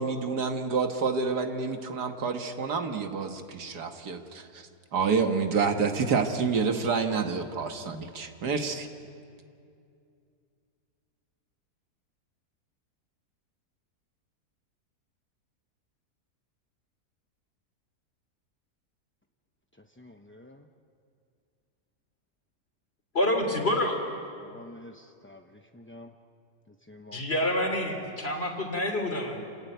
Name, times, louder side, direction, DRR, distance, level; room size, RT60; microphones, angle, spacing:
voice 1, 0.0-8.9, right 5 dB, 85° right, 5 dB, 2.1 m, -28 dB
voice 2, 20.0-20.6 24.4-26.1 26.9-27.2, left 1 dB, 15° left, 3 dB, 0.5 m, -49 dB
voice 3, 23.1-24.0 27.1-29.4, left 1 dB, 40° left, 4 dB, 3.4 m, -27 dB
28.0 x 18.5 x 9.4 m, 2.4 s
omnidirectional pair, 1.7 m